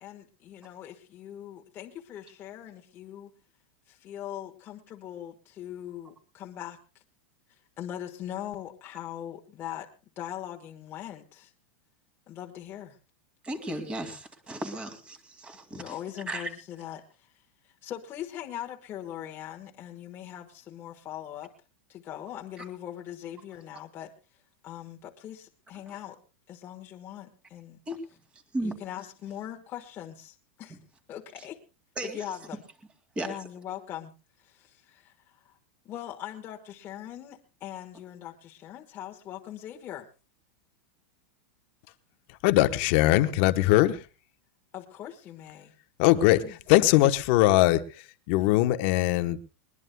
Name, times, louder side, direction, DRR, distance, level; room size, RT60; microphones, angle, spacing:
voice 1, 0.0-3.3 3.9-6.8 7.8-9.9 10.2-11.5 12.3-13.0 15.7-17.3 17.6-21.5 21.9-24.1 24.6-26.2 26.5-27.8 28.6-30.8 31.1-31.6 32.0-32.6 33.2-34.1 34.4-35.6 35.8-40.1 44.7-45.7 46.3-46.5, left 11 dB, 25° left, 1 dB, 1.3 m, -41 dB
voice 2, 13.4-16.0 16.3-16.5 25.9-26.0 27.9-28.0 28.5-28.8 32.0-32.2 33.2-33.4, right 1 dB, 15° right, 6 dB, 2.3 m, -35 dB
voice 3, 42.4-44.1 46.0-49.4, left 16 dB, 50° left, 10 dB, 1.0 m, -21 dB
21.0 x 20.5 x 2.2 m, 0.32 s
supercardioid pair, 155°, 8 cm